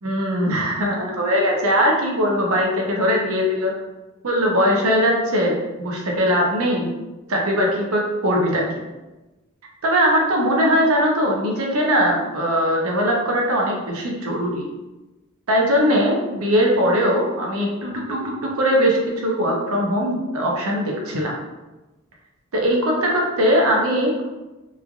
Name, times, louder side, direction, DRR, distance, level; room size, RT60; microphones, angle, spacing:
voice 1, 0.0-3.7 4.2-6.9 7.3-8.8 9.8-14.7 15.5-21.3 22.5-24.2, equal, 65° right, -1 dB, 0.6 m, -20 dB
3.1 x 2.4 x 2.4 m, 1.1 s
head